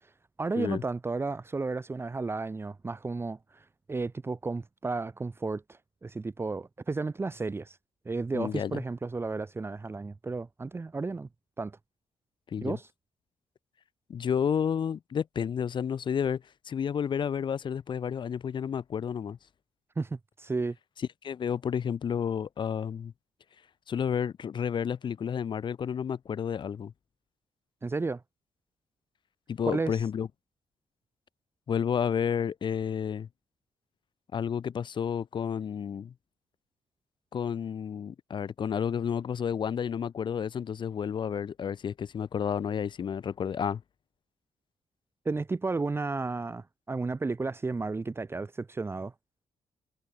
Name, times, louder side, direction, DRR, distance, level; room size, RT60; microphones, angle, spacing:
voice 1, 0.4-7.8 8.0-11.3 11.6-11.8 12.6-12.9 20.0-20.7 27.8-28.2 29.7-30.0 45.2-49.1, right 3 dB, 20° right, 1.5 m, -33 dB
voice 2, 8.3-8.8 12.5-12.8 14.1-19.4 21.2-23.1 23.9-26.9 29.5-30.3 31.7-33.3 34.3-36.1 37.3-43.8, left 7 dB, 40° left, 0.6 m, -31 dB
cardioid pair, 135°, 12 cm